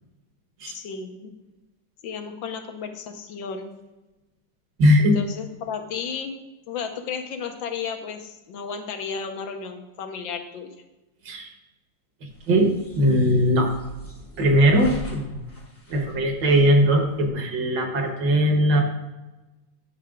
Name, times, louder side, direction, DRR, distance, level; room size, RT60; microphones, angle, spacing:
voice 1, 0.6-1.3 2.0-3.7 5.0-6.3 6.7-10.7, left 6 dB, 90° left, 5 dB, 1.7 m, -33 dB
voice 2, 4.8-5.2 11.3-11.5 12.5-13.7 14.4-15.4 15.9-18.8, equal, 70° right, 4 dB, 1.8 m, -19 dB
sound 1, 12.3-17.3, right 2 dB, 10° left, 0.7 m, -42 dB
10.0 x 6.6 x 3.6 m, 1.1 s
omnidirectional pair, 2.0 m